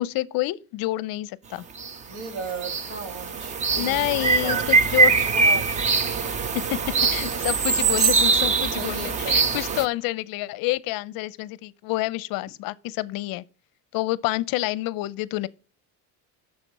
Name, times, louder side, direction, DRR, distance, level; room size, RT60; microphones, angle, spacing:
voice 1, 0.0-1.6 3.8-5.2 7.1-13.4 13.9-15.5, left 18 dB, 60° left, 0.6 m, -28 dB
sound 1, 1.8-1.9 2.2-9.9, right 4 dB, 20° right, 0.3 m, -22 dB
voice 2, 2.1-4.7 5.1-5.9 7.0-7.1 8.8-9.4, right 4 dB, 75° right, 2.4 m, -36 dB
7.0 x 6.6 x 4.6 m
cardioid pair, 150°, 39 cm